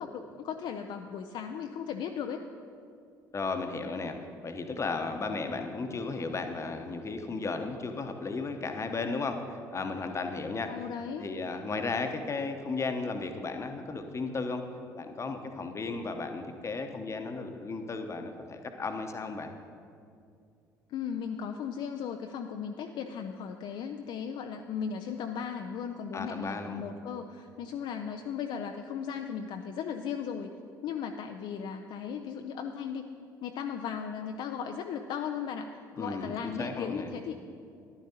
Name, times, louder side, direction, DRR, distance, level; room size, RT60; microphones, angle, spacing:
voice 1, 0.0-2.4 10.7-11.3 20.9-30.5 30.8-33.0 33.4-37.3, left 7 dB, 50° left, 5 dB, 0.5 m, -36 dB
voice 2, 3.3-4.2 4.4-10.7 11.2-14.6 15.0-19.5 26.1-26.8 36.0-37.1, left 3 dB, 30° left, 6 dB, 0.9 m, -34 dB
13.5 x 11.0 x 2.9 m, 2.4 s
figure-of-eight pair, 55°, 10 cm